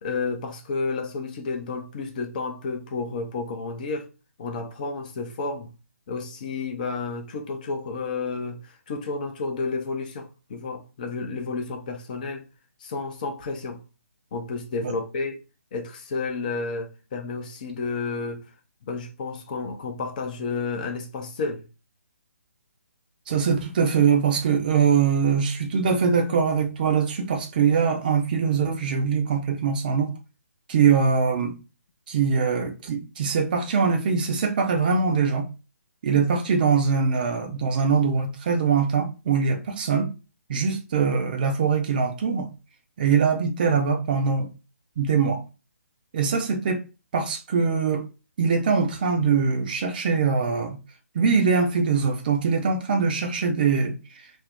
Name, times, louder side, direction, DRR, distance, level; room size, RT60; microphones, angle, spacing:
voice 1, 0.0-4.1 4.4-5.7 6.1-12.5 12.8-13.8 14.3-15.4 15.7-18.5 18.8-21.6, left 4 dB, 35° left, 0.5 m, -31 dB
voice 2, 23.3-30.1 30.7-31.6 32.1-35.5 36.0-40.1 40.5-42.5 43.0-44.5 45.0-45.4 46.1-46.8 47.1-48.0 48.4-50.8 51.1-53.9, right 5 dB, 35° right, 0.5 m, -22 dB
2.6 x 2.0 x 3.4 m
figure-of-eight pair, 140°, 8 cm